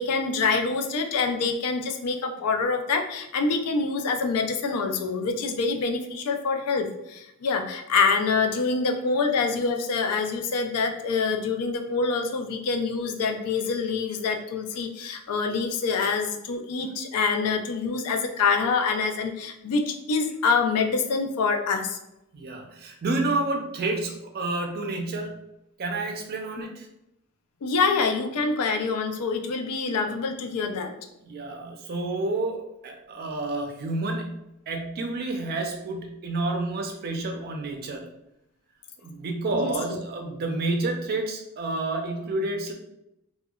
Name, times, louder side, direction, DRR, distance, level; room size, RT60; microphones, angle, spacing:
voice 1, 0.0-22.0 27.6-30.9 39.5-40.0, left 4 dB, 85° left, 5 dB, 0.4 m, -26 dB
voice 2, 22.3-25.4 25.8-26.9 31.2-34.4 34.7-38.1 39.0-42.7, right 2 dB, 45° right, 3 dB, 0.4 m, -29 dB
2.7 x 2.2 x 2.3 m, 0.84 s
head